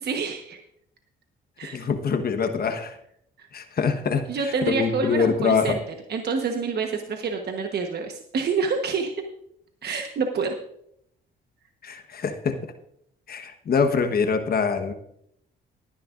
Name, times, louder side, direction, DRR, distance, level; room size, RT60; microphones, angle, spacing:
voice 1, 0.0-0.6 1.6-1.9 3.4-3.5 4.3-5.8 6.1-9.1 9.8-10.5, right 5 dB, 55° right, 4 dB, 1.2 m, -27 dB
voice 2, 1.7-3.0 3.5-4.2 4.7-5.8 11.8-12.6 13.3-14.9, left 5 dB, 50° left, 6 dB, 1.3 m, -24 dB
18.5 x 10.0 x 2.6 m, 0.72 s
cardioid pair, 90°, 20 cm